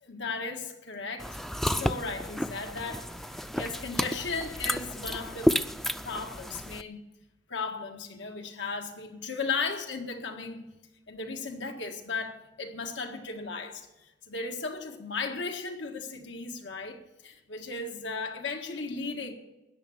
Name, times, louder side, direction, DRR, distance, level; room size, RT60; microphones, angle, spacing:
voice 1, 0.0-1.4 1.6-3.1 3.4-5.6 6.0-7.0 7.5-10.7 11.1-19.3, left 4 dB, 85° left, 1.8 m, -36 dB
sound 1, 1.2-6.8, equal, ahead, 0.4 m, -31 dB
14.0 x 10.0 x 7.2 m
head